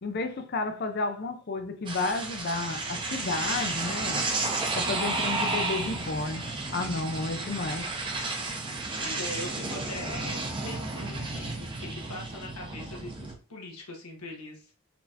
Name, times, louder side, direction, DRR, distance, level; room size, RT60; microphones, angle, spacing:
voice 1, 0.0-4.2 4.7-7.9, left 3 dB, 45° left, 0.4 m, -32 dB
sound 1, 1.9-13.3, right 3 dB, 20° right, 0.6 m, -32 dB
voice 2, 8.9-14.7, left 2 dB, 85° left, 1.3 m, -41 dB
4.2 x 3.3 x 2.7 m
head